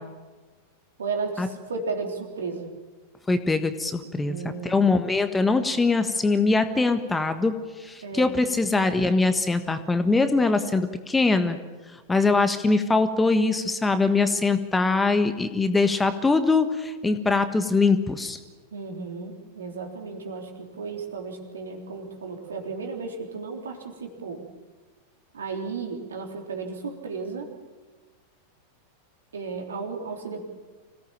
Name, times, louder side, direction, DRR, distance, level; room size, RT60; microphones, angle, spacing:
voice 1, 1.0-2.7 4.2-4.9 8.0-8.4 18.7-24.5 25.3-27.5 29.3-30.4, right 4 dB, 70° right, 3 dB, 3.5 m, -34 dB
voice 2, 3.3-4.4 4.6-11.6 12.1-18.4, left 3 dB, 10° left, 9 dB, 1.4 m, -22 dB
26.0 x 17.5 x 7.4 m, 1.3 s
figure-of-eight pair, 90°, 0 cm